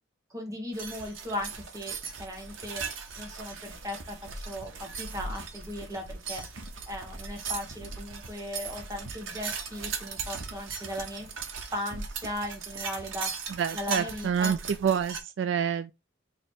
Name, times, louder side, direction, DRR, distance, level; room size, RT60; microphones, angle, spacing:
voice 1, 0.3-2.8 3.2-6.4 6.9-11.3 11.6-13.3 13.7-14.6, left 1 dB, 15° right, 1.2 m, -37 dB
sound 1, 0.7-15.2, right 5 dB, 90° right, 0.8 m, -38 dB
voice 2, 13.6-15.9, right 7 dB, 65° right, 0.3 m, -28 dB
3.1 x 3.0 x 4.4 m
head